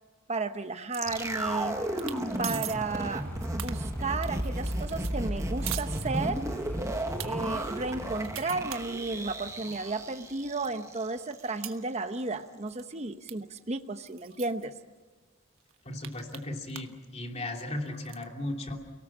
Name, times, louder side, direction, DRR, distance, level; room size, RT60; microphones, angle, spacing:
voice 1, 0.3-1.8 2.4-6.4 7.2-14.7, right 3 dB, 30° right, 8 dB, 0.9 m, -33 dB
sound 1, 0.9-11.1 11.3-11.4, right 1 dB, 15° right, 1.4 m, -33 dB
sound 2, 0.9-1.5 1.8-2.2 2.4-2.8 3.2-6.6 7.0-7.3 7.8-9.8 10.3-10.4 10.6-12.4 12.7-12.9 13.3-13.4 13.6-13.7 14.1-14.7 15.2-15.3 15.6-17.0 17.3-18.2, right 12 dB, 90° right, 1.3 m, -42 dB
sound 3, 1.0-8.3, equal, 10° left, 4.0 m, -47 dB
voice 2, 15.8-18.8, left 1 dB, 30° left, 2 dB, 2.9 m, -36 dB
29.5 x 18.0 x 7.4 m, 1.3 s
head